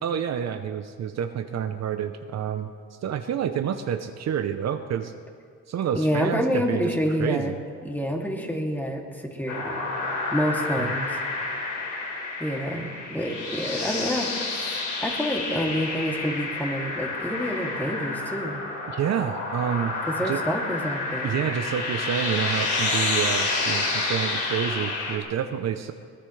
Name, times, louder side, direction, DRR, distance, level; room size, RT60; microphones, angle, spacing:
voice 1, 0.0-2.7 3.0-5.1 5.7-6.9 7.2-7.5 10.8-10.9 18.9-19.9 20.2-20.4 21.2-25.9, right 9 dB, 60° right, 7 dB, 0.8 m, -28 dB
voice 2, 5.9-7.5 7.8-9.9 10.3-11.2 12.4-18.6 20.1-21.4, equal, 5° left, 0 dB, 2.7 m, -28 dB
sound 1, 9.5-25.2, left 3 dB, 70° left, 3.5 m, -29 dB
22.5 x 19.0 x 3.3 m, 2.2 s
cardioid pair, 90°, 30 cm